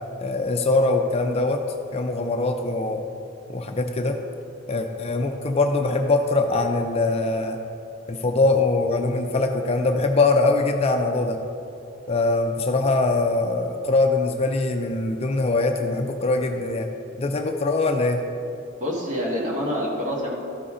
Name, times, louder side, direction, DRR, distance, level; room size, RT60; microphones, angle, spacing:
voice 1, 0.2-1.6 1.9-3.0 3.5-4.2 4.7-7.6 8.1-11.4 12.1-16.9 17.2-18.2, left 3 dB, 30° left, 4 dB, 0.5 m, -22 dB
voice 2, 18.8-20.3, equal, 40° right, -3 dB, 1.8 m, -26 dB
13.5 x 5.6 x 3.8 m, 2.9 s
head